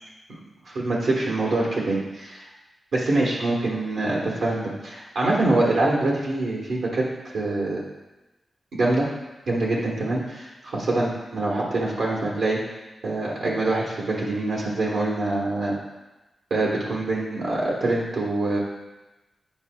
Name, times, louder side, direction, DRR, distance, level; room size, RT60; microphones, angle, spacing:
voice 1, 0.6-2.5 2.9-7.0 7.3-7.8 8.7-9.1 9.5-12.6 13.0-15.8 16.5-18.6, right 2 dB, 90° right, -4 dB, 1.3 m, -24 dB
9.5 x 4.8 x 2.3 m, 1.1 s
wide cardioid pair, 90°, 0 cm